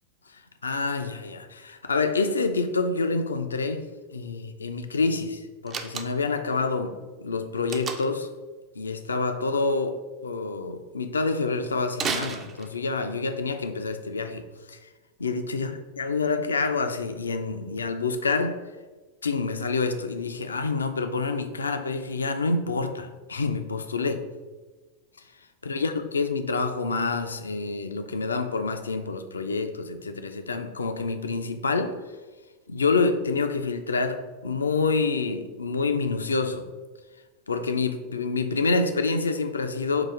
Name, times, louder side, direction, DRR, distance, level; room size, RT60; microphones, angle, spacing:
voice 1, 0.6-3.8 4.1-6.9 7.2-8.3 8.8-10.0 10.2-14.4 14.7-14.8 15.2-18.6 19.2-24.2 25.6-32.0 32.7-36.7 37.5-40.1, left 4 dB, 75° left, 8 dB, 0.4 m, -27 dB
Slam, 5.7-6.4 7.7-8.3 11.9-13.0, right 5 dB, 25° right, 0.4 m, -32 dB
3.9 x 2.5 x 4.4 m, 1.3 s
figure-of-eight pair, 90°, 0 cm